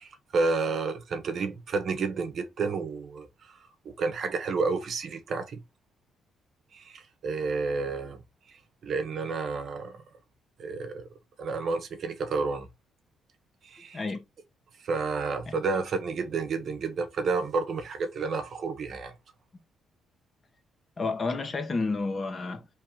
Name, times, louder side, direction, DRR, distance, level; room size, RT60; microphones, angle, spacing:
voice 1, 0.0-3.6 3.8-5.6 6.7-8.2 8.5-10.0 10.6-11.0 11.4-12.7 13.6-14.0 14.8-19.1, right 4 dB, 55° right, 1.0 m, -30 dB
voice 2, 13.9-14.2 15.5-15.6 21.0-22.7, left 3 dB, 35° left, 1.2 m, -30 dB
3.5 x 3.2 x 4.6 m
cardioid pair, 90°, 0 cm